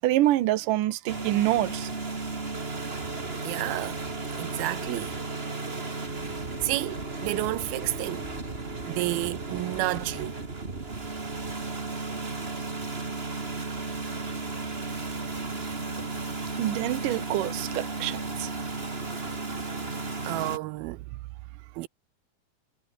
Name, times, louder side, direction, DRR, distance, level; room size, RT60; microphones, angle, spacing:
voice 1, 0.0-1.9 16.6-18.5, right 14 dB, 70° right, 2.6 m, -26 dB
sound 1, 1.1-20.6, right 3 dB, 20° right, 2.0 m, -34 dB
voice 2, 3.4-4.0 4.4-5.1 6.6-8.3 8.9-10.3 20.2-21.0 21.8-21.9, right 19 dB, 85° right, 2.6 m, -30 dB
Bowed string instrument, 5.6-10.5, left 4 dB, 50° left, 7.8 m, -48 dB
omnidirectional pair, 4.2 m